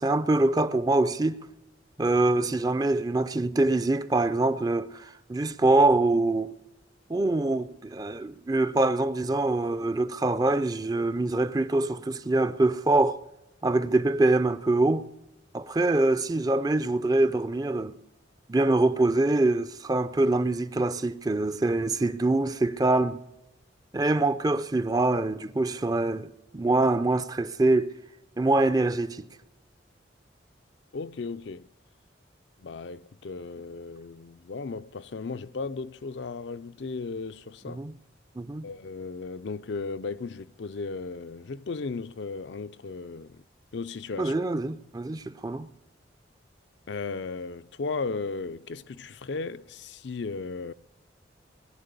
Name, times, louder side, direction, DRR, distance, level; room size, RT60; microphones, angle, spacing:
voice 1, 0.0-1.4 2.0-6.5 7.1-13.2 13.6-15.0 15.5-17.9 18.5-23.2 23.9-27.9 28.4-29.3 37.7-37.9 38.4-38.7 44.2-45.7, right 2 dB, 20° right, 0.5 m, -24 dB
voice 2, 30.9-31.7 32.6-37.8 38.6-43.4 43.7-44.4 46.9-50.7, left 4 dB, 70° left, 0.5 m, -35 dB
20.5 x 10.5 x 6.7 m
head